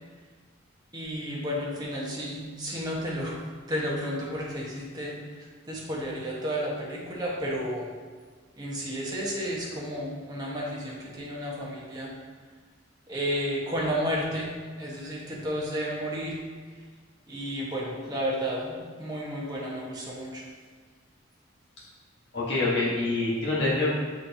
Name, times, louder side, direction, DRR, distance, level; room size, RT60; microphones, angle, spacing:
voice 1, 0.9-3.4 3.7-7.9 8.6-12.1 13.1-14.5 14.8-16.4 17.3-20.4, equal, 20° right, -5 dB, 1.3 m, -32 dB
voice 2, 22.3-23.9, left 2 dB, 60° left, -6 dB, 1.4 m, -26 dB
8.7 x 4.3 x 2.8 m, 1.5 s
head